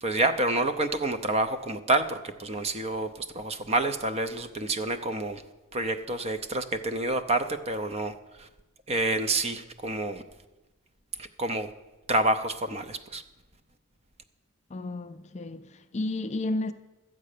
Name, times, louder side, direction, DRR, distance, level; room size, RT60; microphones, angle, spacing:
voice 1, 0.0-5.4 5.7-8.1 8.4-8.5 8.9-10.2 11.4-11.7 12.1-13.2, right 2 dB, 30° right, 0.6 m, -28 dB
voice 2, 14.7-16.7, left 2 dB, 30° left, 0.4 m, -32 dB
12.0 x 8.6 x 6.6 m
head